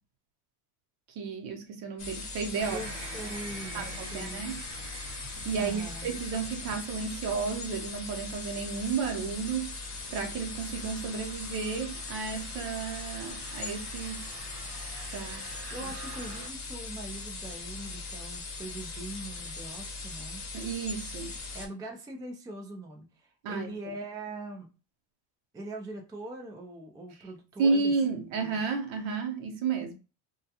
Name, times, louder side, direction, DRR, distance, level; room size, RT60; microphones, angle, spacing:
voice 1, 1.1-2.9 3.7-4.6 5.4-9.7 10.1-14.3 15.1-15.5 15.8-15.9 20.5-21.4 23.4-23.7 27.6-29.9, right 5 dB, 70° right, 0.9 m, -32 dB
sound 1, 2.0-21.7, left 3 dB, 35° left, 0.8 m, -40 dB
sound 2, 2.6-16.5, right 3 dB, 45° right, 0.9 m, -47 dB
voice 2, 2.7-4.5 5.6-6.2 15.7-20.4 21.5-24.7 25.5-28.5, right 2 dB, 10° right, 0.3 m, -42 dB
2.3 x 2.2 x 2.7 m
cardioid pair, 110°, 49 cm